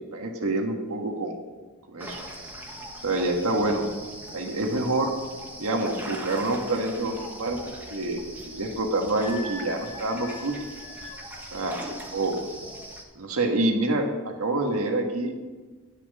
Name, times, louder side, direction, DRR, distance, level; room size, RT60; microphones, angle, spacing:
voice 1, 0.1-1.3 1.9-2.2 3.0-3.8 4.3-5.1 5.6-7.6 7.9-10.5 11.5-11.7 12.1-12.4 13.1-15.3, right 2 dB, 80° right, 3 dB, 1.5 m, -27 dB
sound 1, 2.0-13.0, right 1 dB, 10° right, 1.3 m, -41 dB
Wind instrument woodwind instrument, 9.2-11.2, left 2 dB, 65° left, 2.6 m, -42 dB
10.5 x 7.4 x 5.4 m, 1.3 s
head